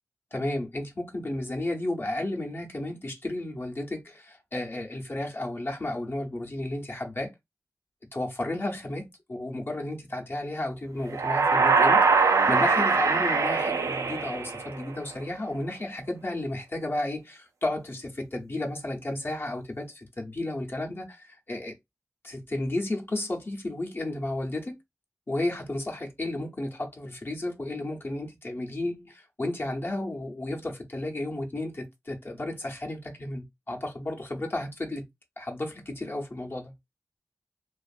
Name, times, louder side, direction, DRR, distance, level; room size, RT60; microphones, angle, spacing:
voice 1, 0.3-7.3 8.1-21.7 22.2-24.8 25.3-35.0 35.4-36.7, left 1 dB, 45° left, 0.7 m, -33 dB
sound 1, 11.1-15.0, right 4 dB, 85° right, 0.4 m, -22 dB
2.5 x 2.4 x 2.4 m
wide cardioid pair, 50°, 5 cm